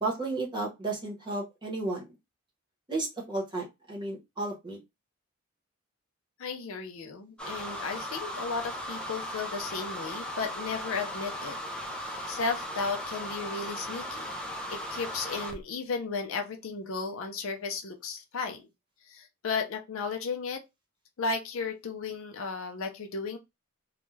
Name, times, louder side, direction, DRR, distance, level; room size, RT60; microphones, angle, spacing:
voice 1, 0.0-2.1 2.9-4.8, right 2 dB, 20° right, 0.9 m, -33 dB
voice 2, 6.4-11.6 12.0-14.3 14.7-18.7 19.1-20.6 21.2-23.4, left 4 dB, 65° left, 0.5 m, -34 dB
sound 1, 7.4-15.6, equal, 5° left, 0.4 m, -37 dB
2.3 x 2.2 x 3.1 m
head